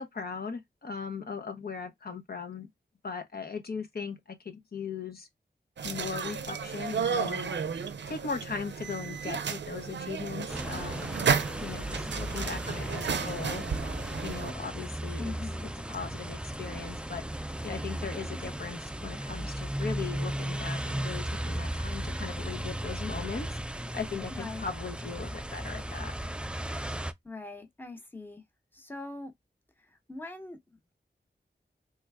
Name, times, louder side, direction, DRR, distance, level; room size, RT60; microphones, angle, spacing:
voice 1, 0.0-2.7 3.0-5.3 5.8-7.5 8.1-11.1 11.6-13.6 14.2-15.3 15.9-17.2 17.6-26.1, left 5 dB, 60° left, 0.7 m, -38 dB
sound 1, 5.8-14.5, right 6 dB, 80° right, 0.5 m, -33 dB
sound 2, 10.5-27.1, right 1 dB, 5° right, 0.3 m, -36 dB
voice 2, 15.2-15.7 24.3-24.6 27.2-28.4 28.7-29.3 30.1-30.9, left 3 dB, 10° left, 0.9 m, -42 dB
3.3 x 2.2 x 3.4 m
wide cardioid pair, 65°, 18 cm